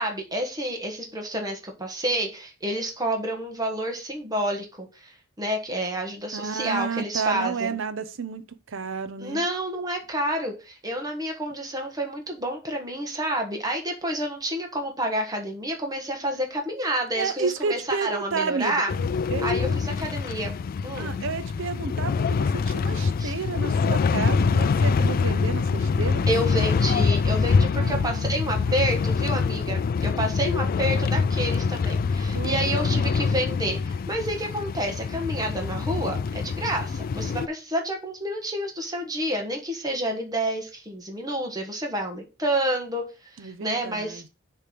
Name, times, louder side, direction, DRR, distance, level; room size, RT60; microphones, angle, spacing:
voice 1, 0.0-7.7 9.2-18.9 19.4-20.5 20.8-21.1 23.2-23.3 26.3-44.2, right 1 dB, 20° right, 1.4 m, -29 dB
voice 2, 6.3-9.4 17.1-19.8 21.0-26.3 27.7-29.0 32.3-32.6 32.9-33.1 43.4-44.3, right 5 dB, 65° right, 0.7 m, -32 dB
sound 1, 18.9-37.5, left 5 dB, 45° left, 0.3 m, -25 dB
6.7 x 3.4 x 5.9 m
head